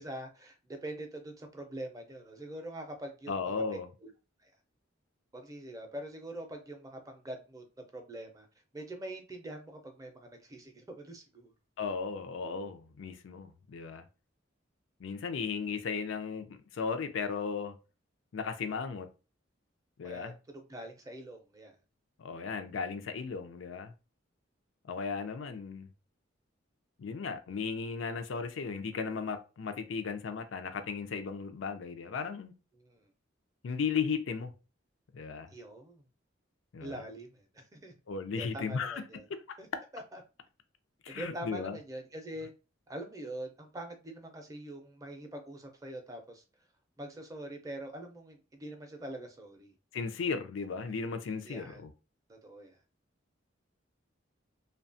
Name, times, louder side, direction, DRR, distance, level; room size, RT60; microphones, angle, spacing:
voice 1, 0.0-4.1 4.4-4.5 5.3-7.6 7.9-8.5 8.7-11.5 20.0-21.7 32.8-33.1 35.5-36.0 36.8-37.9 38.4-39.3 39.6-39.7 39.9-40.2 41.1-42.5 42.9-46.4 47.0-49.7 51.4-51.8 52.3-52.8, right 1 dB, 15° right, 0.4 m, -44 dB
voice 2, 3.3-3.9 11.8-14.0 15.0-17.7 18.3-19.1 20.0-20.3 22.2-23.9 24.9-25.9 27.0-32.5 33.6-34.5 35.1-35.5 36.7-36.9 38.1-39.2 41.0-41.8 49.9-51.9, left 5 dB, 80° left, 0.4 m, -36 dB
2.7 x 2.2 x 2.6 m
head